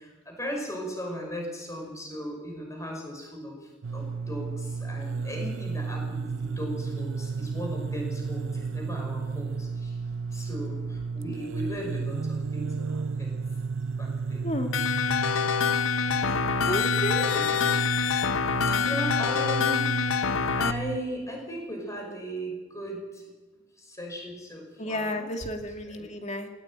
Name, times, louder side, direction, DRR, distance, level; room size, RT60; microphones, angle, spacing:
voice 1, 0.0-10.0 10.3-13.3 14.0-14.5 16.0-16.5 17.0-17.5 18.7-19.9 20.3-23.3 23.8-25.3 25.9-26.1, equal, 15° left, 1 dB, 5.6 m, -37 dB
sound 1, 3.8-21.0, right 4 dB, 70° right, 0.6 m, -33 dB
sound 2, 14.7-20.7, left 6 dB, 80° left, 0.9 m, -26 dB
voice 2, 16.7-17.2 24.8-26.5, left 1 dB, 35° left, 4 dB, 2.4 m, -31 dB
19.5 x 18.5 x 8.9 m, 1.2 s
head